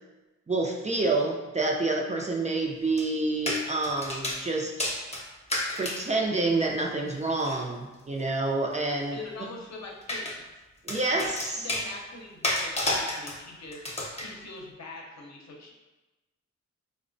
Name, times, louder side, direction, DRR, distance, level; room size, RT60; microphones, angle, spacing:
voice 1, 0.5-4.7 5.7-9.2 10.8-11.7, right 2 dB, 25° right, 0 dB, 0.4 m, -28 dB
sound 1, 3.0-3.1 3.5-4.4 4.8-6.0 7.4-7.6 10.0-10.4 10.9-11.9 12.4-13.4 13.7-14.3, left 1 dB, 20° left, 0.7 m, -30 dB
voice 2, 9.1-10.4 11.2-13.8 14.2-15.7, left 3 dB, 65° left, 0 dB, 0.7 m, -43 dB
4.1 x 2.1 x 2.5 m, 1.1 s
cardioid pair, 80°, 29 cm